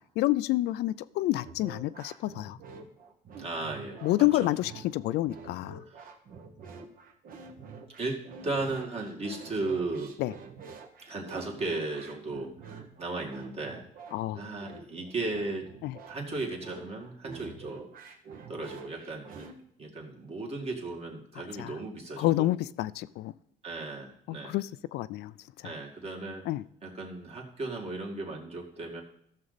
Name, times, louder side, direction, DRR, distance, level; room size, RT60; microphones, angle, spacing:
voice 1, 0.2-2.6 4.0-5.8 10.2-10.3 14.1-14.4 15.8-16.0 21.6-21.7 22.2-23.3 24.3-25.3 25.6-25.7 26.5-26.6, left 16 dB, 75° left, 16 dB, 0.4 m, -28 dB
sound 1, 1.4-19.5, right 5 dB, 55° right, 1.4 m, -47 dB
voice 2, 3.4-4.0 5.9-6.1 8.0-10.1 11.0-12.5 13.0-13.8 14.4-15.7 16.1-17.9 18.5-19.5 19.8-22.5 23.6-24.6 25.6-26.4 26.8-29.0, right 2 dB, 35° right, 0 dB, 2.2 m, -35 dB
14.0 x 6.5 x 4.0 m, 0.70 s
cardioid pair, 110°, 17 cm